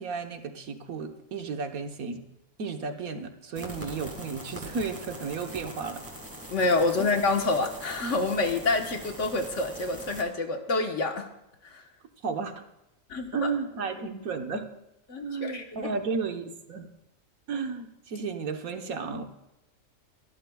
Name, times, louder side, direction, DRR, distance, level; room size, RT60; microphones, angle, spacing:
voice 1, 0.0-2.2 2.6-6.0 7.0-7.1 12.2-12.6 13.3-14.6 15.2-16.9 17.5-19.2, right 5 dB, 70° right, 6 dB, 1.5 m, -33 dB
sound 1, 3.6-10.2, right 1 dB, 10° right, 1.9 m, -42 dB
voice 2, 6.5-11.3 11.6-11.8 13.1-13.5 15.1-15.9, left 3 dB, 55° left, 4 dB, 1.5 m, -27 dB
24.0 x 12.5 x 2.3 m, 0.89 s
omnidirectional pair, 1.5 m